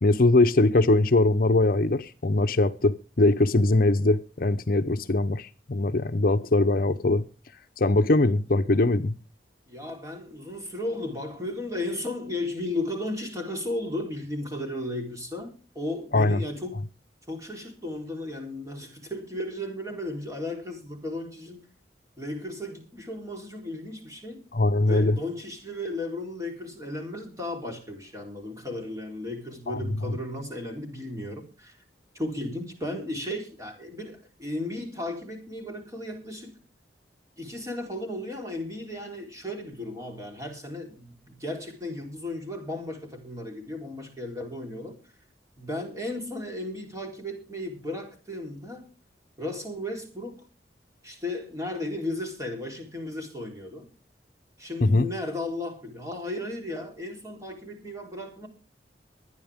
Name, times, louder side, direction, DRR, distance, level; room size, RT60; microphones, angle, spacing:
voice 1, 0.0-7.2 7.8-9.1 16.1-16.4 24.5-25.2 29.7-29.8 54.8-55.1, left 2 dB, 55° left, 0.8 m, -21 dB
voice 2, 9.7-16.7 17.3-21.7 22.2-24.5 24.8-31.8 32.1-36.6 37.4-45.0 45.6-48.9 49.4-50.5 51.0-53.9 54.6-58.5, left 1 dB, 20° right, 3.8 m, -35 dB
24.0 x 9.7 x 3.6 m
head